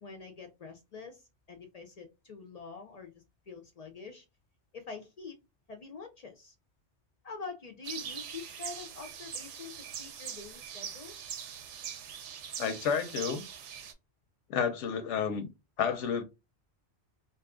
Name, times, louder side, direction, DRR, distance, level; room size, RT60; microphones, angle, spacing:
voice 1, 0.0-4.2 4.7-5.4 5.7-6.5 7.2-11.1, left 4 dB, 55° left, 0.4 m, -45 dB
sound 1, 7.8-13.9, right 8 dB, 80° right, 0.9 m, -42 dB
voice 2, 12.6-13.4 14.5-15.5 15.8-16.2, left 7 dB, 90° left, 0.9 m, -30 dB
2.7 x 2.3 x 3.5 m
omnidirectional pair, 1.2 m